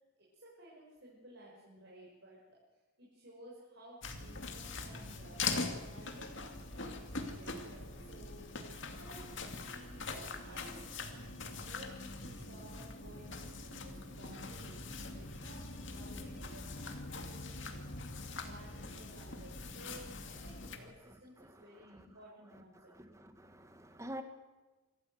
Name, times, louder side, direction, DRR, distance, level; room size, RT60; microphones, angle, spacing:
voice 1, 0.2-2.4 3.0-11.3 11.6-22.9, right 1 dB, 55° right, -5 dB, 6.2 m, -56 dB
sound 1, 4.0-20.8, left 3 dB, 60° left, 2.4 m, -42 dB
voice 2, 22.9-24.2, equal, 15° right, 7 dB, 1.7 m, -47 dB
26.0 x 14.5 x 8.0 m, 1.2 s
head